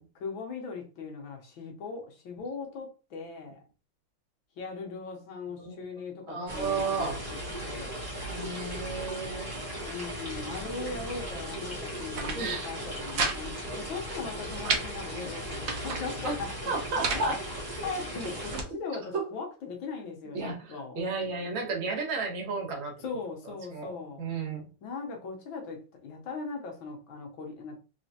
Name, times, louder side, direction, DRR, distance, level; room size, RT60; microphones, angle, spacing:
voice 1, 0.1-3.6 4.6-7.2 7.6-8.0 9.9-16.5 17.1-17.2 17.8-21.0 23.0-24.2 24.8-27.8, left 4 dB, 70° left, 1.7 m, -39 dB
voice 2, 6.3-7.2 8.3-9.6 12.3-12.7 16.2-16.3 16.7-17.4 18.5-18.6 19.1-19.2 20.3-22.9 23.7-24.7, right 4 dB, 75° right, 2.0 m, -33 dB
sound 1, 6.5-18.6, equal, 15° right, 1.1 m, -37 dB
sound 2, 11.9-12.4 12.7-13.4 13.7-13.8 14.1-14.9 15.4-16.0 16.7-17.3 17.9-18.7, right 4 dB, 55° right, 1.0 m, -33 dB
4.1 x 3.2 x 2.8 m
omnidirectional pair, 2.3 m